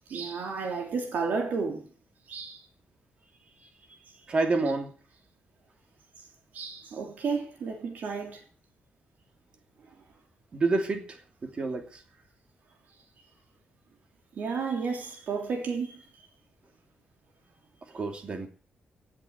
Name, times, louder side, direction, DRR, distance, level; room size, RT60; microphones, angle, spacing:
voice 1, 0.1-1.9 2.3-2.6 6.5-8.4 14.4-16.0, right 5 dB, 55° right, 3.0 m, -32 dB
voice 2, 4.3-4.9 10.5-11.2 11.4-12.0 17.9-18.5, right 3 dB, 30° right, 2.8 m, -28 dB
17.0 x 7.6 x 8.1 m
wide cardioid pair, 180°, 3 cm